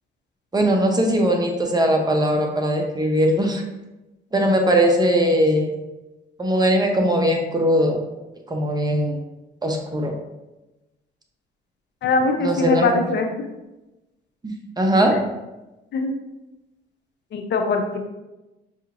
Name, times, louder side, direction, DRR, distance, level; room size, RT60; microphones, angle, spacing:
voice 1, 0.5-3.6 4.3-5.7 6.4-8.0 8.5-9.2 9.6-10.1 12.4-12.9 14.4-15.2, equal, 20° right, 2 dB, 0.7 m, -20 dB
voice 2, 12.0-13.3 15.1-15.2 15.9-16.1 17.3-18.0, left 3 dB, 60° left, 4 dB, 0.6 m, -22 dB
5.5 x 2.9 x 2.5 m, 1.0 s
cardioid pair, 90°, 20 cm